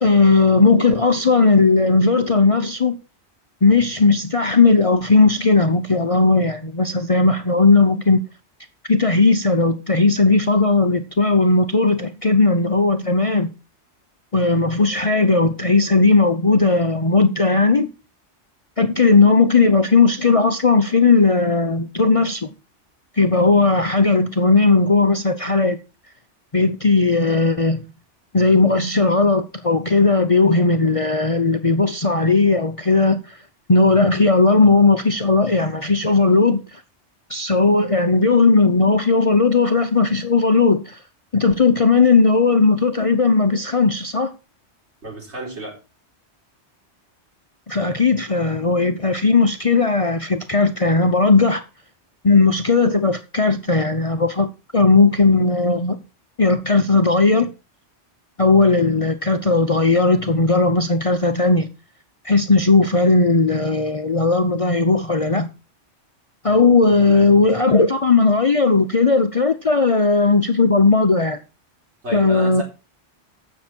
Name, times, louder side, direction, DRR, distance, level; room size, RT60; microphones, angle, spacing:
voice 1, 0.0-3.0 3.6-8.2 8.9-13.5 14.3-17.9 18.8-22.5 23.2-25.8 26.5-27.8 28.3-33.4 33.7-36.8 37.3-41.0 41.3-44.3 47.7-51.6 52.2-54.5 54.7-56.0 56.4-57.5 58.4-61.7 62.2-65.5 66.4-71.4 72.1-72.6, left 3 dB, 35° left, 0.7 m, -16 dB
voice 2, 45.0-45.8 67.0-67.3 72.0-72.6, equal, 65° right, 4.5 m, -31 dB
15.0 x 6.5 x 4.5 m
omnidirectional pair, 1.2 m